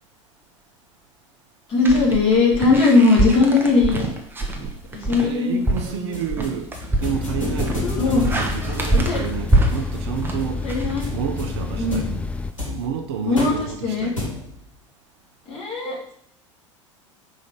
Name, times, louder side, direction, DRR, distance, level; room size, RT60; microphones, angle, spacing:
voice 1, 1.7-4.1 4.9-5.6 5.9-6.2 7.6-8.3 8.9-9.2 10.6-11.1 11.8-12.2 13.2-14.1 15.5-16.1, left 3 dB, 35° left, 2.8 m, -19 dB
sound 1, 1.8-11.6, right 1 dB, 15° right, 1.0 m, -25 dB
voice 2, 5.2-6.7 7.0-10.6 11.1-12.1 12.6-14.2, right 8 dB, 60° right, 0.8 m, -30 dB
sound 2, 5.8-14.7, left 2 dB, 85° left, 2.3 m, -33 dB
sound 3, 7.0-12.5, left 3 dB, 10° left, 0.3 m, -29 dB
5.4 x 3.9 x 5.1 m
figure-of-eight pair, 75°, 16 cm